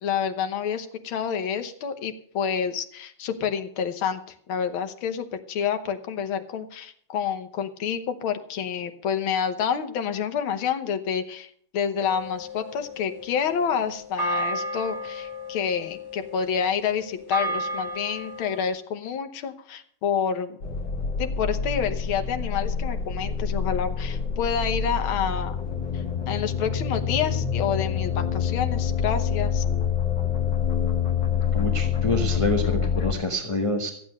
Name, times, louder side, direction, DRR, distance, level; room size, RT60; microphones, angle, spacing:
voice 1, 0.0-4.2 4.5-20.6 21.2-25.6 25.9-29.6, left 7 dB, 75° left, 7 dB, 1.9 m, -28 dB
sound 1, 12.0-18.6, equal, 10° right, 2.4 m, -33 dB
sound 2, 20.6-33.1, left 7 dB, 60° left, 2.0 m, -26 dB
voice 2, 31.5-33.9, left 1 dB, 20° left, 3 dB, 1.1 m, -27 dB
14.5 x 8.6 x 6.5 m, 0.62 s
omnidirectional pair, 2.3 m